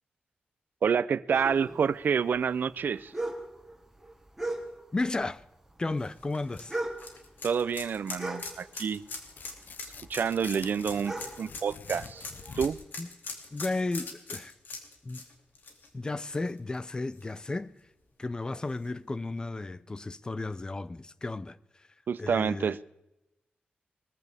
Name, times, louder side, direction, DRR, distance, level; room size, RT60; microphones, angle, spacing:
voice 1, 0.8-3.1 7.4-9.0 10.1-12.3 12.6-12.8 22.1-22.8, right 6 dB, 70° right, 0.5 m, -28 dB
sound 1, 1.3-5.1 5.4-9.1 9.4-12.6, right 2 dB, 5° right, 2.5 m, -38 dB
voice 2, 4.9-5.4 5.8-6.8 13.0-13.1 13.5-14.5 15.0-15.2 15.9-17.8 18.2-21.6 22.2-22.8, left 2 dB, 25° left, 0.5 m, -33 dB
sound 2, 6.0-16.8 17.1-17.2 18.7-18.8, left 3 dB, 80° left, 2.5 m, -42 dB
Tearing, 9.3-13.0, left 6 dB, 65° left, 0.6 m, -47 dB
21.0 x 15.0 x 3.5 m
wide cardioid pair, 135°, 3 cm